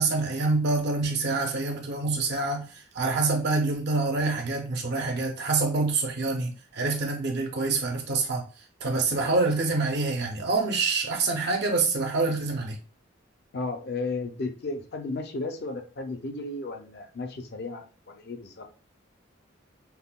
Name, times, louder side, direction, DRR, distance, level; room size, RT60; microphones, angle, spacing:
voice 1, 0.0-8.4 8.8-12.8, right 3 dB, 50° right, 0.5 m, -26 dB
voice 2, 13.5-18.7, left 3 dB, 50° left, 0.5 m, -34 dB
5.4 x 2.1 x 2.2 m
head